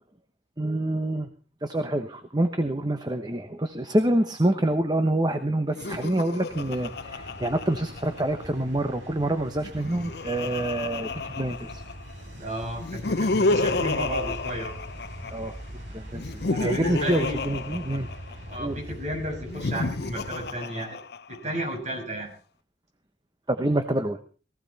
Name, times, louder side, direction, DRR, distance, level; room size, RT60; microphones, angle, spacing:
voice 1, 0.6-1.3 1.6-11.8 15.3-15.6 15.9-18.1 18.6-18.8 23.5-24.2, right 1 dB, 20° right, 8 dB, 1.1 m, -27 dB
Laughter, 5.7-8.4 9.5-12.1 12.8-15.5 16.1-18.6 19.4-21.5, left 3 dB, 60° left, 0.7 m, -30 dB
sound 1, 6.5-20.5, equal, 80° right, 6.9 m, -42 dB
voice 2, 12.3-14.8 15.9-16.0 16.5-17.4 18.5-21.0 21.3-22.3, right 1 dB, 40° right, 1 dB, 6.8 m, -33 dB
19.0 x 15.5 x 4.2 m, 0.37 s
head